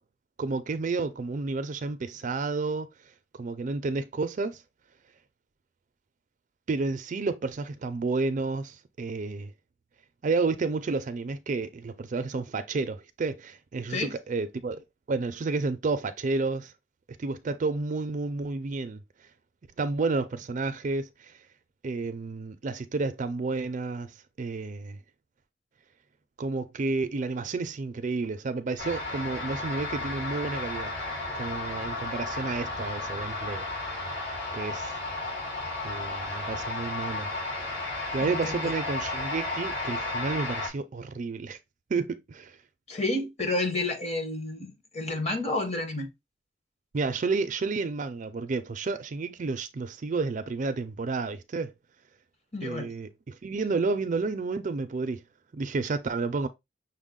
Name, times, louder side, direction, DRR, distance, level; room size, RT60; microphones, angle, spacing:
voice 1, 0.4-2.9 3.3-4.6 6.7-9.5 10.2-16.7 17.2-19.0 19.8-21.4 21.8-25.0 26.4-30.9 31.3-34.0 34.5-34.9 35.8-37.3 38.1-41.6 41.9-42.6 46.9-51.7 52.6-55.2 55.5-56.5, right 3 dB, 40° right, 0.4 m, -31 dB
sound 1, 28.8-40.7, left 2 dB, 70° left, 2.3 m, -33 dB
voice 2, 38.2-38.7 42.9-46.1 52.5-52.9, left 2 dB, 35° left, 1.0 m, -30 dB
6.1 x 2.1 x 3.6 m
head